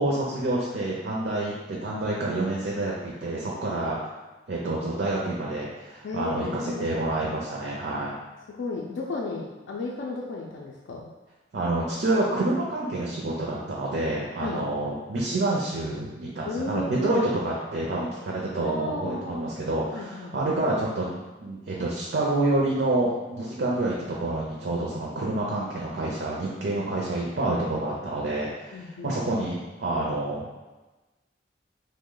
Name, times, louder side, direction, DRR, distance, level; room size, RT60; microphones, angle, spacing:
voice 1, 0.0-4.0 4.5-8.2 11.5-30.5, right 2 dB, 65° right, -4 dB, 0.5 m, -28 dB
voice 2, 6.0-7.0 8.5-11.1 14.4-14.6 16.5-17.2 18.6-19.4 19.9-20.5 28.7-29.2, left 3 dB, 85° left, -2 dB, 0.4 m, -34 dB
3.0 x 2.1 x 3.7 m, 1.1 s
head